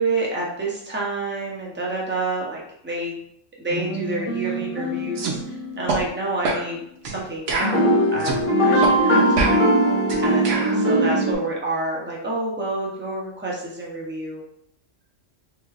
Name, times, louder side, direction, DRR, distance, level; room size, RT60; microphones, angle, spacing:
voice 1, 0.0-3.1 3.6-9.6 10.2-14.4, right 2 dB, 15° right, -3 dB, 0.4 m, -28 dB
sound 1, 3.7-6.1 7.6-11.3, right 1 dB, 25° left, 0.9 m, -21 dB
sound 2, 5.2-5.4 5.9-6.0 6.4-6.7 7.0-7.2 7.5-8.4 8.8-9.0 9.4-10.8, right 3 dB, 80° right, 1.0 m, -26 dB
3.2 x 2.8 x 2.4 m, 0.71 s
omnidirectional pair, 1.3 m